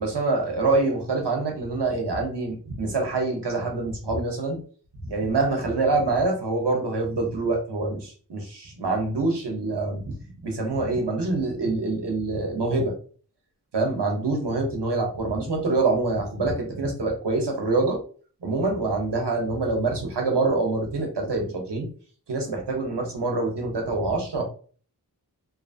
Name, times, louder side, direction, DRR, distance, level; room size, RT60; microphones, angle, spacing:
voice 1, 0.0-4.6 5.0-10.1 10.4-12.9 13.7-18.0 18.4-21.9 22.3-24.4, right 3 dB, 80° right, 1 dB, 0.9 m, -25 dB
2.8 x 2.4 x 2.6 m, 0.42 s
wide cardioid pair, 50°, 40 cm